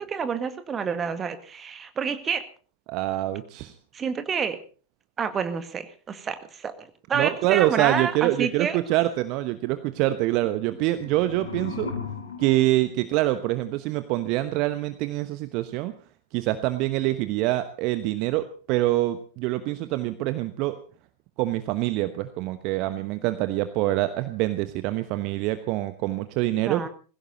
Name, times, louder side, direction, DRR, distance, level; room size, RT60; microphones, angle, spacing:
voice 1, 0.0-2.5 3.9-4.6 5.2-8.8 26.7-26.9, right 6 dB, 20° right, 10 dB, 2.0 m, -29 dB
voice 2, 2.9-3.7 7.1-11.9 12.4-15.9 16.3-20.8 21.4-26.8, right 16 dB, 40° right, 12 dB, 1.1 m, -25 dB
sound 1, 10.7-13.7, left 4 dB, 70° left, 3.5 m, -37 dB
20.5 x 16.5 x 4.2 m, 0.38 s
figure-of-eight pair, 90°, 0 cm